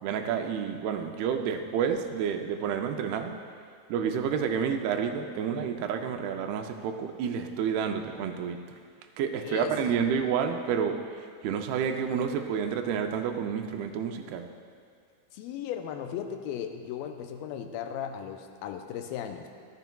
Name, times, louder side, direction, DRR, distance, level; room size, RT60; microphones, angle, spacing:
voice 1, 0.0-3.3 3.9-8.6 9.2-14.5, right 7 dB, 85° right, 5 dB, 2.6 m, -29 dB
voice 2, 9.3-9.7 15.3-19.5, left 9 dB, 85° left, 5 dB, 2.3 m, -36 dB
13.5 x 12.0 x 2.3 m, 2.2 s
omnidirectional pair, 4.4 m